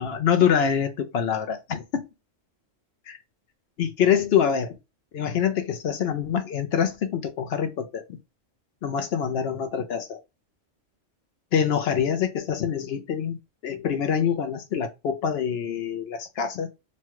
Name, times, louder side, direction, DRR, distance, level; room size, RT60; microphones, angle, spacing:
voice 1, 0.0-1.8 3.1-3.2 3.8-4.7 5.1-8.0 8.8-10.2 11.5-13.4 13.6-16.7, left 8 dB, 65° left, 0.7 m, -25 dB
3.1 x 2.3 x 2.9 m
omnidirectional pair, 1.3 m